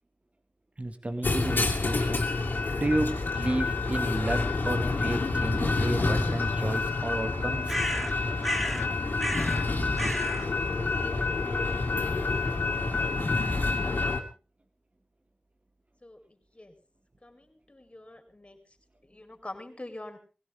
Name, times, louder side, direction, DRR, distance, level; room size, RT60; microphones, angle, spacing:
voice 1, 0.8-2.3 2.7-7.8, right 1 dB, 45° right, 6 dB, 2.4 m, -32 dB
sound 1, 1.2-14.2, left 3 dB, 90° left, 2.4 m, -28 dB
sound 2, 7.7-8.9 9.2-9.7 10.0-10.5, equal, ahead, 1.5 m, -32 dB
voice 2, 17.2-18.6 19.1-20.2, left 1 dB, 35° left, 5 dB, 4.7 m, -44 dB
20.0 x 16.5 x 3.8 m, 0.33 s
wide cardioid pair, 50°, 3 cm